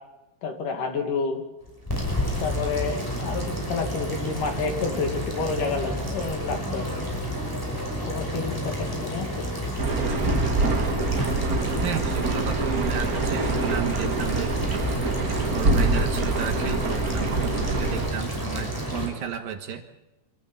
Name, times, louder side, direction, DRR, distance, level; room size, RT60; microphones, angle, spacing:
voice 1, 0.4-1.4 2.4-7.1 8.1-9.3, left 4 dB, 60° left, 4 dB, 3.7 m, -29 dB
sound 1, 1.6-19.1, equal, 5° left, 5.5 m, -30 dB
sound 2, 9.8-18.1, right 3 dB, 40° right, 1.3 m, -25 dB
voice 2, 11.8-19.9, right 8 dB, 65° right, 6 dB, 2.9 m, -33 dB
26.0 x 14.0 x 8.8 m, 1.0 s
omnidirectional pair, 4.5 m